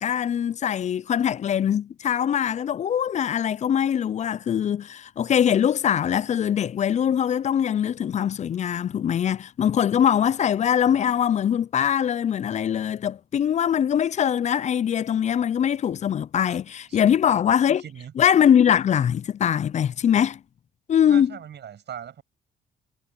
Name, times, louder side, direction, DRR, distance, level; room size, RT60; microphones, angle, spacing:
voice 1, 0.0-17.8 18.2-20.4 20.9-21.4, left 9 dB, 35° left, 0.4 m, -22 dB
voice 2, 17.7-18.1 21.1-22.2, right 9 dB, 60° right, 6.6 m, -39 dB
cardioid pair, 90°, 20 cm